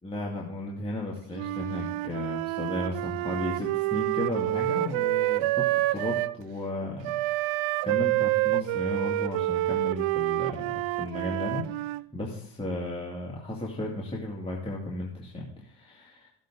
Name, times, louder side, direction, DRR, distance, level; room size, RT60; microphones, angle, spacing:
voice 1, 0.0-7.1 7.4-16.3, left 1 dB, 10° left, -4 dB, 2.4 m, -35 dB
Wind instrument woodwind instrument, 1.3-6.3 7.0-12.0, right 17 dB, 75° right, 0.6 m, -28 dB
15.0 x 7.6 x 3.8 m, 0.70 s
cardioid pair, 95°, 49 cm